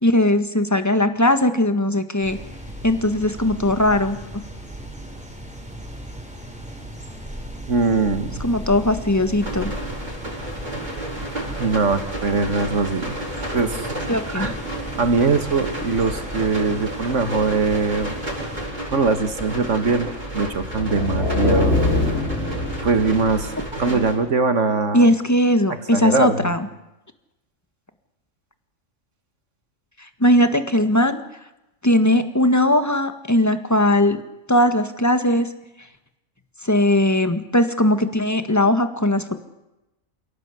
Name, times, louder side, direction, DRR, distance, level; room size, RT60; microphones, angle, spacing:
voice 1, 0.0-2.4 2.8-4.2 8.4-9.7 14.1-14.5 24.9-26.7 30.2-31.2 31.8-34.2 34.5-35.5 36.6-39.4, left 1 dB, 15° left, 8 dB, 1.7 m, -19 dB
sound 1, 2.2-18.7, equal, 5° right, 5.3 m, -37 dB
voice 2, 7.7-8.5 11.6-13.2 13.5-13.9 14.3-14.5 15.0-18.1 18.9-21.8 22.8-23.5 23.8-25.1 25.9-26.5, right 4 dB, 65° right, 9 dB, 2.1 m, -21 dB
sound 2, 9.4-24.1, right 1 dB, 35° right, 6.6 m, -31 dB
sound 3, 20.6-23.6, left 2 dB, 55° left, 6.6 m, -23 dB
28.0 x 17.5 x 8.4 m, 0.93 s
omnidirectional pair, 1.4 m